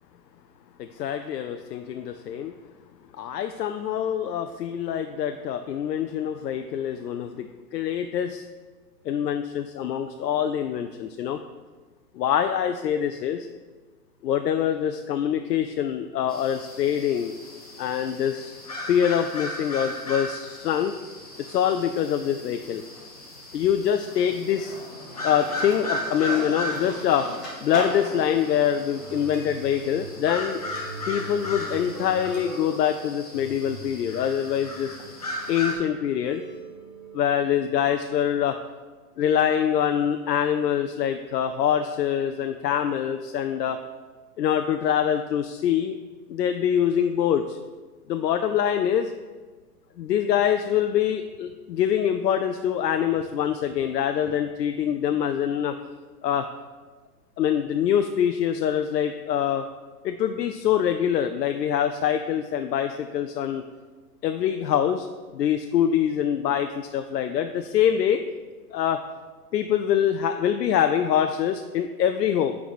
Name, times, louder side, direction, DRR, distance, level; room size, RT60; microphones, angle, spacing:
voice 1, 0.8-2.5 3.2-8.4 9.1-11.4 12.2-13.5 14.2-17.3 17.8-18.5 18.9-21.0 21.4-22.8 23.5-24.8 25.2-27.3 27.6-30.6 31.1-35.0 35.5-36.4 37.1-38.6 39.2-43.8 44.4-46.0 46.3-47.6 48.1-49.1 50.0-55.8 56.2-56.5 57.4-59.7 60.0-63.6 64.2-65.1 65.3-68.2 68.7-69.0 69.5-72.6, left 9 dB, 90° left, 8 dB, 0.6 m, -24 dB
sound 1, 16.3-35.7, left 1 dB, 25° left, 0.5 m, -37 dB
Skateboard, 20.4-21.5 21.9-32.1, equal, ahead, 1.0 m, -40 dB
sound 2, 28.9-37.6, right 2 dB, 25° right, 1.0 m, -42 dB
8.5 x 4.7 x 4.2 m, 1.4 s
hypercardioid pair, 175°, 48 cm